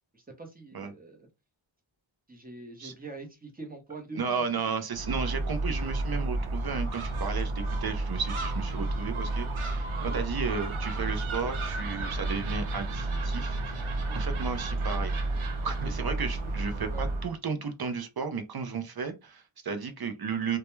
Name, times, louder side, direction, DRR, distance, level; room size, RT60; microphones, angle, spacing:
voice 1, 0.1-1.3 2.3-4.4 9.9-10.2 13.9-14.2 16.4-16.5 16.9-17.1, right 3 dB, 20° right, 0.7 m, -44 dB
voice 2, 4.1-15.2 15.6-20.6, right 5 dB, 50° right, 0.5 m, -34 dB
Gull seagull, 4.9-17.3, right 2 dB, 90° right, 0.6 m, -31 dB
2.2 x 2.2 x 3.0 m
wide cardioid pair, 75°, 49 cm